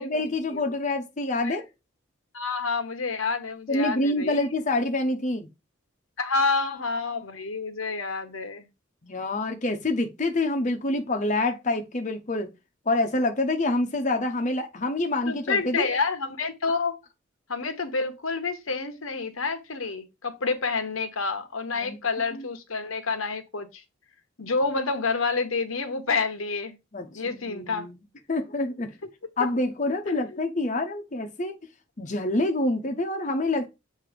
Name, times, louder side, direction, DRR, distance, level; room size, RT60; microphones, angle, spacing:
voice 1, 0.0-1.6 3.7-5.5 6.5-7.3 9.0-12.5 12.9-15.9 21.7-22.0 22.3-22.5 26.9-28.0 28.3-28.9 29.4-31.5 32.0-33.7, left 2 dB, 35° left, 0.8 m, -27 dB
voice 2, 2.3-4.5 6.2-8.7 15.3-16.9 17.5-23.8 24.4-26.8 27.1-27.9 30.1-30.4, left 4 dB, 85° left, 1.1 m, -28 dB
7.5 x 2.8 x 5.0 m
head